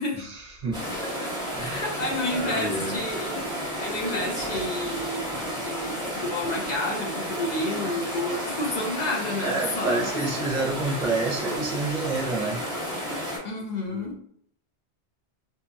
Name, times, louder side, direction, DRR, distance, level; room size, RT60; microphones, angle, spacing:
voice 1, 0.1-0.9 1.5-3.0 9.4-12.6 13.9-14.3, right 3 dB, 50° right, -3 dB, 0.8 m, -29 dB
sound 1, 0.7-13.4, equal, 5° right, 1.0 m, -32 dB
voice 2, 1.0-1.3 1.6-3.4 3.8-10.2 13.4-14.1, left 1 dB, 50° left, 0 dB, 0.5 m, -30 dB
sound 2, 4.4-6.8 7.0-7.1, left 1 dB, 65° left, 1.0 m, -49 dB
2.7 x 2.2 x 2.5 m, 0.65 s
omnidirectional pair, 1.1 m